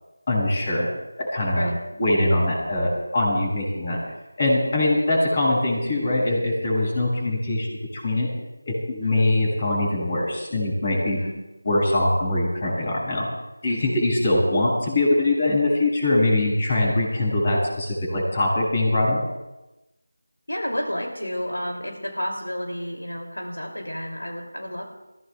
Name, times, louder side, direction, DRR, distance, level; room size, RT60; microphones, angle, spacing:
voice 1, 0.3-0.9 1.3-1.7 2.0-4.0 4.4-8.3 8.7-11.2 11.7-13.3 13.6-19.2, left 1 dB, 30° left, -3 dB, 7.0 m, -22 dB
voice 2, 20.5-24.8, equal, 85° left, 1 dB, 2.8 m, -31 dB
29.5 x 17.0 x 2.3 m, 1.0 s
figure-of-eight pair, 165°, 0 cm